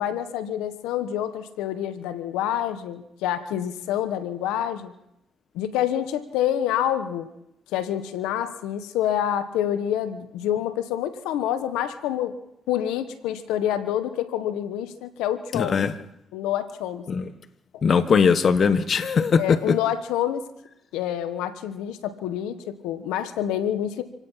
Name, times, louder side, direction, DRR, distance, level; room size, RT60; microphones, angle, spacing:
voice 1, 0.0-4.9 5.5-7.3 7.7-12.3 12.7-15.8 16.3-17.1 19.4-20.4 20.9-24.0, left 11 dB, 85° left, 11 dB, 1.4 m, -27 dB
voice 2, 15.5-15.9 17.1-17.3 17.8-19.8, left 6 dB, 50° left, 12 dB, 1.4 m, -20 dB
26.5 x 18.0 x 5.8 m, 0.83 s
supercardioid pair, 65°, 0 cm